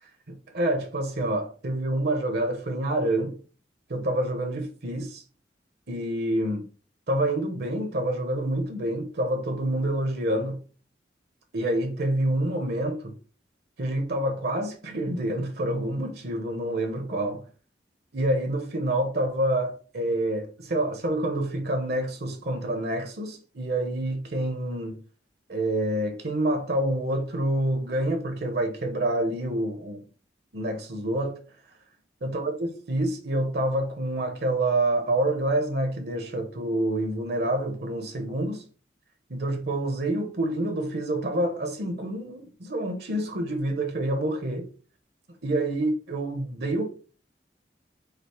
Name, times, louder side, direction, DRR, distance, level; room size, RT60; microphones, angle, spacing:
voice 1, 0.3-3.4 3.9-5.2 5.9-6.6 7.1-10.6 11.5-13.1 13.8-17.4 18.1-25.0 25.5-30.0 30.5-31.4 32.2-38.6 39.3-44.7 45.4-46.9, right 1 dB, 65° right, 0.9 m, -27 dB
5.0 x 2.0 x 4.4 m
head